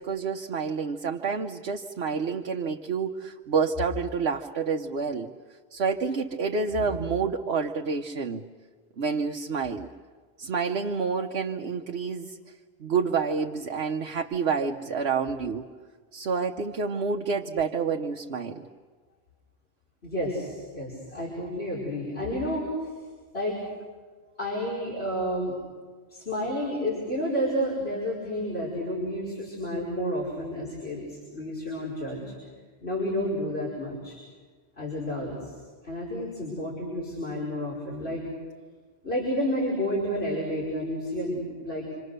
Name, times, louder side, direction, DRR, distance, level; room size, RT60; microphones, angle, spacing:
voice 1, 0.0-5.3 5.7-8.4 9.0-9.9 10.4-12.4 12.8-15.7 16.1-18.7, right 5 dB, 90° right, 2 dB, 1.2 m, -28 dB
voice 2, 20.0-22.9 23.3-23.6 24.4-25.5 26.1-31.0 31.3-32.2 32.8-34.2 34.8-35.5 35.8-38.2 39.0-41.9, equal, 80° left, -5 dB, 5.8 m, -30 dB
27.5 x 27.0 x 6.7 m, 1.5 s
omnidirectional pair, 1.0 m